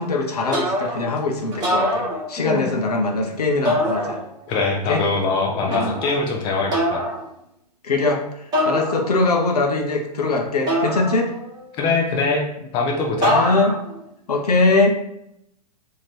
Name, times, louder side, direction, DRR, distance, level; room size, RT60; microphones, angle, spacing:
voice 1, 0.0-4.2 4.9-5.0 5.6-6.0 7.8-11.3 13.3-13.7 14.3-15.0, left 3 dB, 65° left, 3 dB, 0.7 m, -21 dB
sound 1, 0.5-1.1 1.5-2.7 3.6-4.5 5.7-6.2 6.7-7.2 8.5-9.4 10.7-11.6 13.2-14.0, equal, 20° right, 1.4 m, -24 dB
voice 2, 2.4-2.7 4.5-7.0 11.8-12.4 12.7-13.4, left 3 dB, 25° left, 1 dB, 0.6 m, -22 dB
2.9 x 2.9 x 4.2 m, 0.77 s
figure-of-eight pair, 110°, 21 cm